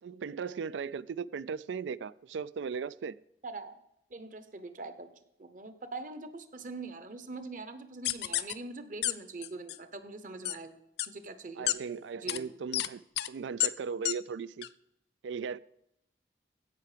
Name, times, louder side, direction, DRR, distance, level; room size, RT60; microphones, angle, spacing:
voice 1, 0.0-3.2 11.6-13.0 13.3-14.7 15.2-15.6, right 6 dB, 85° right, 0.4 m, -37 dB
voice 2, 3.4-3.8 4.1-5.1 5.4-10.8 11.1-11.7 12.1-12.5, right 3 dB, 45° right, 0.9 m, -43 dB
sound 1, 8.0-8.5 9.0-9.1 9.4-9.8 10.4-10.6 11.0-11.1 11.7-11.8 12.3-12.4 12.7-12.9 13.2-13.3 13.6-13.7 14.0-14.1 14.6-14.7, left 14 dB, 65° left, 0.4 m, -29 dB
15.5 x 5.8 x 5.0 m
head